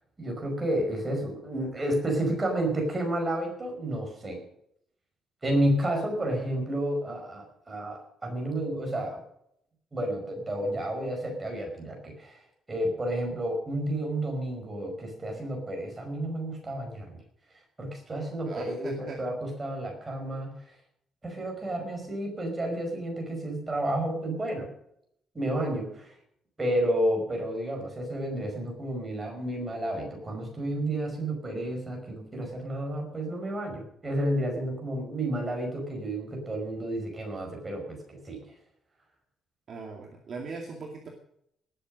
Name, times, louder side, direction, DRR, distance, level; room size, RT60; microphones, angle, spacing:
voice 1, 0.2-4.4 5.4-9.2 9.9-12.4 12.7-17.2 17.8-20.5 21.2-24.7 25.4-26.1 26.6-38.4, right 1 dB, 15° right, 1 dB, 5.3 m, -31 dB
voice 2, 18.5-19.4 39.7-41.1, right 4 dB, 40° right, 0 dB, 2.3 m, -40 dB
19.0 x 8.1 x 6.4 m, 0.72 s
cardioid pair, 175°, 0 cm